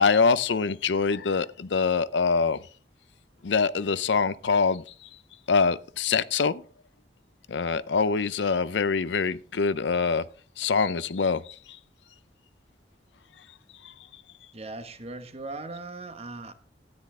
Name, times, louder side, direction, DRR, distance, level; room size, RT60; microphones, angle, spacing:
voice 1, 0.0-2.6 3.4-4.8 5.5-6.6 7.5-10.2 10.6-11.6 13.8-13.9, left 5 dB, 90° left, 0.6 m, -24 dB
voice 2, 14.5-16.5, right 2 dB, 35° right, 1.1 m, -39 dB
13.0 x 9.9 x 3.7 m
head